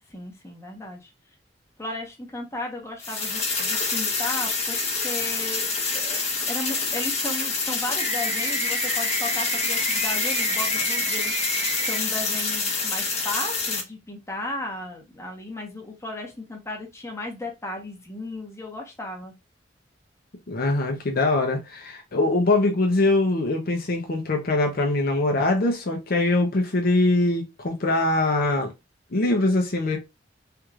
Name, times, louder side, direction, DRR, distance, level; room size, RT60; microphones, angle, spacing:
voice 1, 0.1-1.1 1.8-5.7 5.9-6.2 6.4-19.3, left 2 dB, 15° left, 1.0 m, -35 dB
sound 1, 3.0-13.8, left 4 dB, 35° left, 1.1 m, -27 dB
sound 2, 8.0-12.0, right 1 dB, 15° right, 0.6 m, -30 dB
voice 2, 20.5-28.7 29.1-30.0, left 2 dB, 55° left, 0.7 m, -22 dB
3.4 x 3.1 x 2.4 m
head